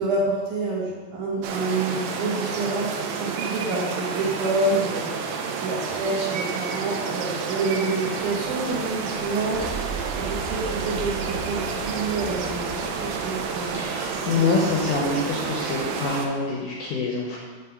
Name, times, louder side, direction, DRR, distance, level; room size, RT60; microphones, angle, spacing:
voice 1, 0.0-5.2 5.6-12.7 13.0-14.1 14.3-14.5, right 3 dB, 65° right, -5 dB, 2.3 m, -28 dB
sound 1, 1.4-16.3, right 5 dB, 80° right, 2.3 m, -30 dB
sound 2, 8.1-16.3, right 1 dB, 50° right, 1.3 m, -43 dB
sound 3, 9.5-13.7, right 4 dB, 20° left, 1.0 m, -38 dB
voice 2, 13.8-17.4, left 4 dB, 75° left, -2 dB, 1.9 m, -25 dB
9.4 x 3.4 x 5.9 m, 1.4 s
omnidirectional pair, 4.6 m